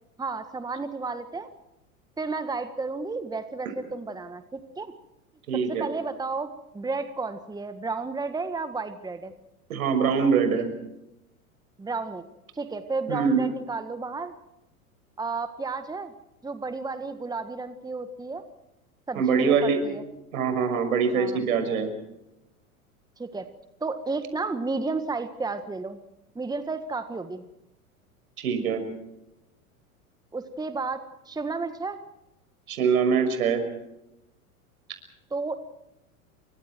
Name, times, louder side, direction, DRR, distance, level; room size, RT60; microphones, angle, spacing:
voice 1, 0.2-1.5 2.2-4.9 5.7-6.5 6.7-9.3 11.8-12.2 12.5-14.3 15.2-16.1 16.4-18.4 19.1-20.0 21.1-21.4 23.2-23.5 23.8-26.0 26.3-27.5 30.3-32.0 35.3-35.5, right 3 dB, 10° right, 9 dB, 1.6 m, -32 dB
voice 2, 5.5-5.9 9.7-10.7 13.1-13.4 19.1-19.8 20.3-21.9 28.4-28.8 32.7-33.6, right 6 dB, 70° right, 8 dB, 6.2 m, -23 dB
29.5 x 24.5 x 4.6 m, 0.87 s
hypercardioid pair, 95°, 43 cm